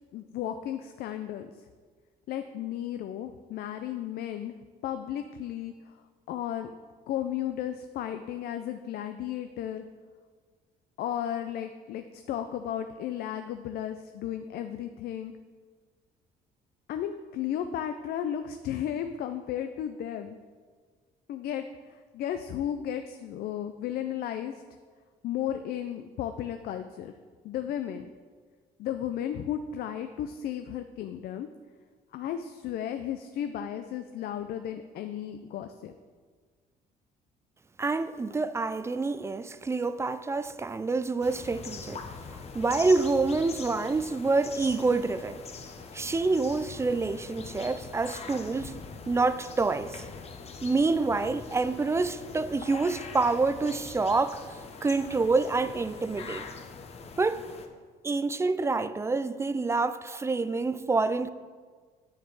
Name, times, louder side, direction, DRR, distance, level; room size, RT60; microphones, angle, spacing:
voice 1, 0.1-1.5 2.3-4.6 4.8-5.9 6.3-6.7 7.1-9.9 11.0-15.3 16.9-20.4 21.3-24.5 25.2-27.1 27.4-28.1 28.8-31.5 32.1-35.9, left 10 dB, 65° left, 0.5 m, -34 dB
voice 2, 37.8-42.0 42.5-45.4 45.9-50.0 50.6-54.4 54.8-56.5 57.2-57.4 58.0-61.3, right 3 dB, 15° right, 0.3 m, -27 dB
sound 1, 41.2-57.7, left 5 dB, 40° left, 0.9 m, -43 dB
9.2 x 7.0 x 4.0 m
cardioid pair, 110°, 17 cm